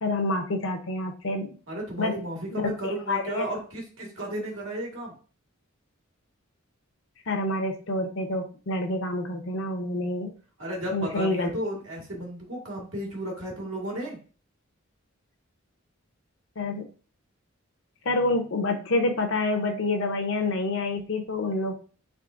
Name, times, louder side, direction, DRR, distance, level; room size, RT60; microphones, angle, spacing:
voice 1, 0.0-1.5 2.0-2.1 2.5-2.7 3.1-3.5 7.3-10.3 10.9-11.5 16.6-16.9 18.0-21.7, left 2 dB, 65° left, 3 dB, 0.7 m, -27 dB
voice 2, 1.7-5.1 10.6-14.2, right 1 dB, 75° right, -1 dB, 1.6 m, -33 dB
3.6 x 3.2 x 3.7 m, 0.38 s
head